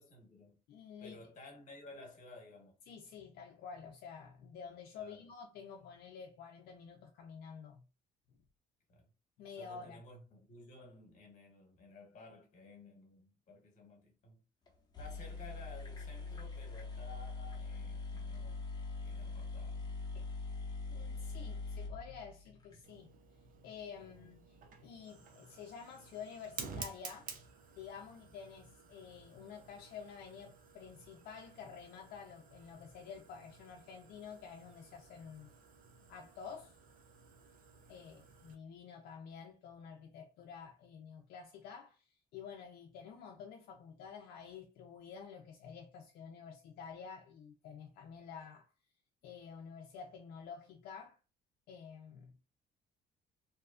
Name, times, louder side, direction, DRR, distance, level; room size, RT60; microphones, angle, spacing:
voice 1, 0.0-0.5 1.0-2.8 5.0-5.3 8.9-9.0 9.6-14.4 15.0-18.6 19.0-19.9 24.1-24.2, left 2 dB, 45° left, 1.2 m, -55 dB
voice 2, 0.7-1.2 2.9-7.8 9.4-10.0 20.1-20.3 20.9-23.1 23.6-27.3 27.8-35.5 36.1-36.7 37.9-48.7 49.2-51.2 51.7-52.3, left 6 dB, 70° left, 0.5 m, -50 dB
sound 1, 14.7-14.8 14.9-22.8, left 3 dB, 25° left, 0.9 m, -42 dB
Fire, 22.8-38.5, right 5 dB, 55° right, 0.6 m, -53 dB
2.7 x 2.2 x 2.4 m
cardioid pair, 110°, 17 cm